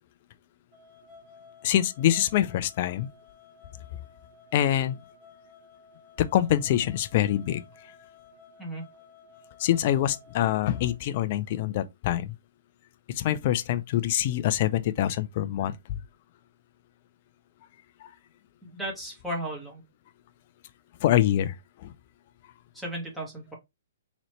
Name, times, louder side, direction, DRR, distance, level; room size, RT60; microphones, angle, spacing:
sound 1, 0.7-11.0, left 5 dB, 35° right, 1.7 m, -54 dB
voice 1, 1.6-3.1 4.5-5.0 6.2-7.6 9.6-12.3 13.1-15.7 21.0-21.5 21.8-21.9, left 12 dB, 45° left, 0.5 m, -25 dB
voice 2, 18.6-19.8 22.7-23.6, right 1 dB, 5° right, 1.7 m, -35 dB
3.9 x 3.0 x 3.1 m
hypercardioid pair, 140°, 0 cm